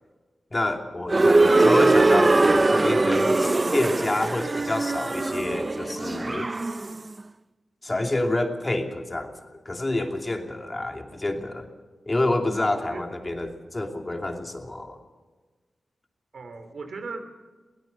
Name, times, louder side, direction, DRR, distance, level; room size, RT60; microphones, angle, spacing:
voice 1, 0.5-6.5 7.8-11.7 12.1-15.0, left 2 dB, 25° left, 4 dB, 2.8 m, -28 dB
sound 1, 1.1-7.0, right 2 dB, 30° right, 0.6 m, -21 dB
voice 2, 12.7-13.0 16.3-17.2, right 4 dB, 75° right, 7 dB, 2.9 m, -39 dB
22.0 x 17.5 x 7.0 m, 1.3 s
wide cardioid pair, 85°, 0 cm